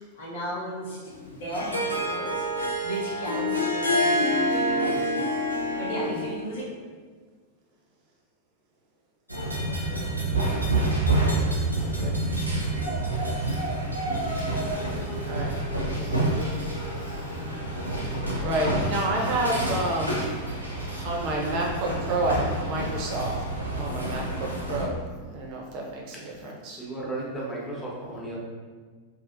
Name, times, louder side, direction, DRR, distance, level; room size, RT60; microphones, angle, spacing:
voice 1, 0.2-1.0 1.3-2.4 2.8-5.2 5.8-6.6, right 1 dB, 60° left, -6 dB, 1.0 m, -34 dB
Harp, 1.1-6.4, left 1 dB, 80° left, 0.5 m, -26 dB
sound 1, 9.3-24.9, right 2 dB, 90° right, 0.6 m, -28 dB
voice 2, 11.7-12.1 15.2-15.5 16.0-16.2 17.9-18.1 18.4-20.2 21.0-23.4 23.8-25.0 25.3-26.8, right 2 dB, 45° right, -1 dB, 0.5 m, -29 dB
voice 3, 26.7-28.4, right 2 dB, 10° left, -6 dB, 0.9 m, -34 dB
3.2 x 2.7 x 2.5 m, 1.5 s
figure-of-eight pair, 90°, 0 cm